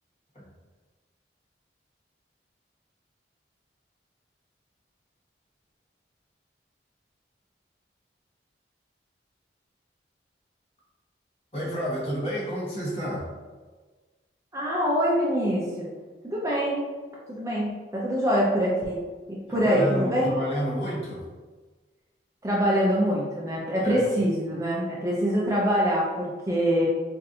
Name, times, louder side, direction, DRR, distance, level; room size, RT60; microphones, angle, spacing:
voice 1, 11.5-13.3 19.5-21.2 23.8-24.1, equal, 35° left, -8 dB, 1.4 m, -30 dB
voice 2, 14.5-15.9 16.2-16.9 17.3-19.0 19.3-20.3 22.4-26.9, equal, 15° right, -5 dB, 0.5 m, -24 dB
4.4 x 2.6 x 2.7 m, 1.3 s
head